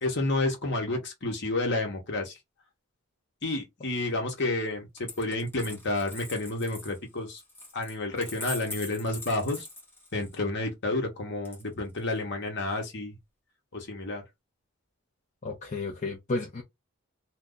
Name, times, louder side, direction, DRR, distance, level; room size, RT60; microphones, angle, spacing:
voice 1, 0.0-2.4 3.4-7.4 7.7-9.7 10.1-13.2 13.7-14.2, left 2 dB, 50° left, 1.1 m, -30 dB
Coin (dropping), 5.0-10.4 11.4-12.2, left 2 dB, 10° left, 1.0 m, -43 dB
voice 2, 15.4-16.6, left 3 dB, 35° left, 0.6 m, -32 dB
2.6 x 2.3 x 3.8 m
head